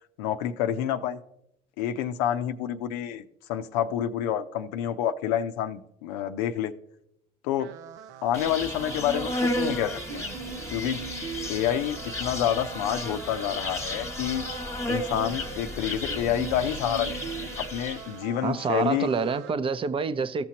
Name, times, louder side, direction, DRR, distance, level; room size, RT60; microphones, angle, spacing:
voice 1, 0.2-1.2 1.8-3.2 3.5-6.7 7.4-7.7 8.2-10.3 10.7-11.0 11.5-14.4 14.9-17.2 17.7-19.3, left 10 dB, 85° left, 0.6 m, -28 dB
sound 1, 7.6-19.5, right 10 dB, 70° right, 0.4 m, -42 dB
Insect, 8.3-18.2, left 1 dB, 15° left, 1.3 m, -33 dB
voice 2, 18.4-20.4, right 5 dB, 25° right, 0.6 m, -27 dB
15.0 x 6.0 x 2.9 m
supercardioid pair, 85°, 20 cm